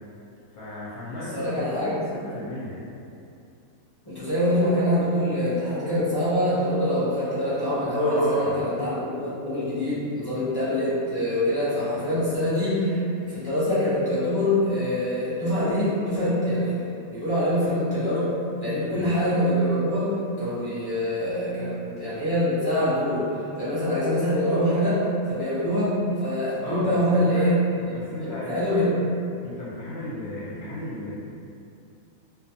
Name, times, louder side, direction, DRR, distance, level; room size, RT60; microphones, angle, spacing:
voice 1, 0.5-2.8 8.0-8.5 18.7-19.1 26.6-27.5 27.9-29.1 29.4-31.1, left 1 dB, 75° left, -10 dB, 1.0 m, -34 dB
voice 2, 1.3-2.0 4.1-16.7 17.1-18.3 18.6-23.3 23.6-27.5 28.5-28.9, equal, 35° left, -12 dB, 0.3 m, -24 dB
2.4 x 2.3 x 2.7 m, 2.6 s
omnidirectional pair, 1.5 m